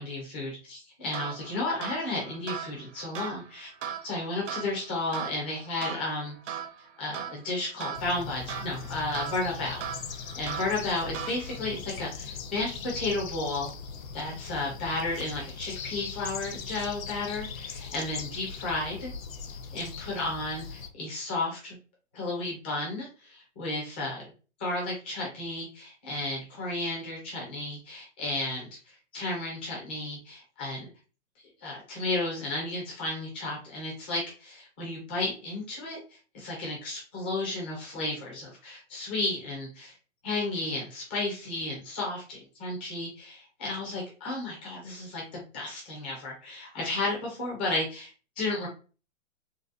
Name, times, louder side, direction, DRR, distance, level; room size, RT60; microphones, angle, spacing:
voice 1, 0.0-3.7 4.0-6.6 7.0-9.8 10.3-13.7 14.1-19.1 19.7-21.8 22.1-24.3 24.6-30.9 31.6-39.9 40.2-48.1 48.4-48.7, left 2 dB, 10° left, -3 dB, 0.3 m, -33 dB
sound 1, 1.1-11.8, right 8 dB, 65° right, 0.9 m, -40 dB
sound 2, 7.9-20.9, left 5 dB, 85° left, 0.6 m, -40 dB
3.9 x 2.3 x 2.5 m, 0.35 s
hypercardioid pair, 140°, 39 cm